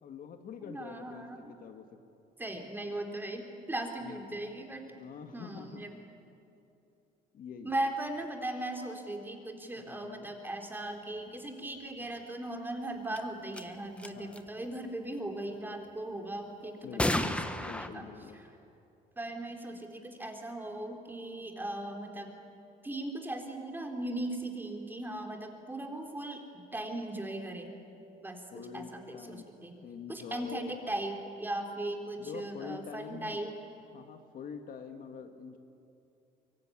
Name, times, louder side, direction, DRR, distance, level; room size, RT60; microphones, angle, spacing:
voice 1, 0.0-1.9 4.0-4.4 4.9-5.8 7.3-7.8 9.7-10.4 14.1-14.5 16.8-18.4 28.5-29.5 29.8-30.8 32.2-33.4 33.9-35.6, left 6 dB, 60° left, 6 dB, 2.0 m, -45 dB
voice 2, 0.6-1.5 2.4-4.9 5.3-5.9 7.6-18.1 19.2-22.3 22.8-26.4 26.7-27.8 28.2-28.4 28.7-29.8 30.1-33.5, right 1 dB, 10° right, 3 dB, 3.6 m, -38 dB
sound 1, 13.2-13.3 13.5-13.6 14.0-14.4 17.0-17.9, left 1 dB, 5° left, 1.3 m, -31 dB
24.0 x 23.5 x 9.8 m, 2.7 s
cardioid pair, 110°, 17 cm